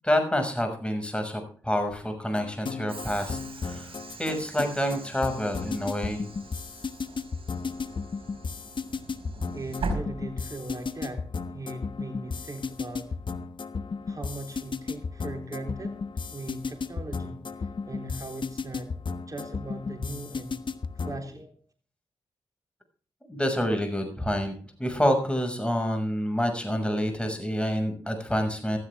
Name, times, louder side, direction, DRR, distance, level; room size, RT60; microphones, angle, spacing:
voice 1, 0.0-3.9 4.2-6.3 23.3-24.5 24.8-28.8, equal, 10° left, 5 dB, 6.3 m, -27 dB
sound 1, 2.4-21.3, left 5 dB, 55° left, 1.3 m, -34 dB
Train / Sliding door, 2.9-10.9, right 3 dB, 65° right, 5.4 m, -41 dB
voice 2, 9.5-13.2 14.1-16.0 16.3-18.9 19.3-20.6 21.0-21.6, right 2 dB, 35° right, 4 dB, 3.6 m, -39 dB
15.0 x 14.5 x 3.6 m, 0.43 s
supercardioid pair, 40°, 10 cm